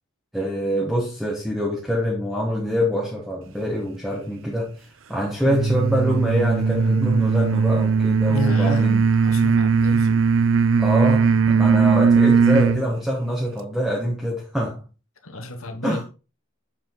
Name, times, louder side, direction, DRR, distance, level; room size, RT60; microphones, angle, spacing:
voice 1, 0.3-4.8 5.1-9.0 10.8-14.8 15.8-16.0, equal, ahead, 1.4 m, -25 dB
sound 1, 5.5-12.8, right 5 dB, 70° right, 0.5 m, -18 dB
voice 2, 8.3-10.1 15.2-16.0, left 2 dB, 85° left, 1.2 m, -32 dB
7.1 x 5.1 x 3.8 m
head